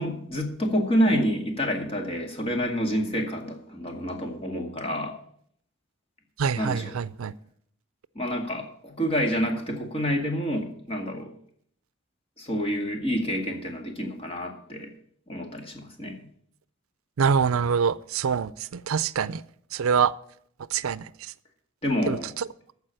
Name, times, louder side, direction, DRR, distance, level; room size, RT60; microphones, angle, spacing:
voice 1, 0.0-5.1 6.6-7.0 8.2-11.3 12.4-14.9 15.3-16.2 21.8-22.3, equal, 30° left, 2.1 m, -28 dB
voice 2, 6.4-7.3 17.2-19.4 19.7-20.1 20.7-21.1 22.1-22.2, right 6 dB, 85° right, 0.5 m, -25 dB
14.0 x 4.8 x 8.9 m
head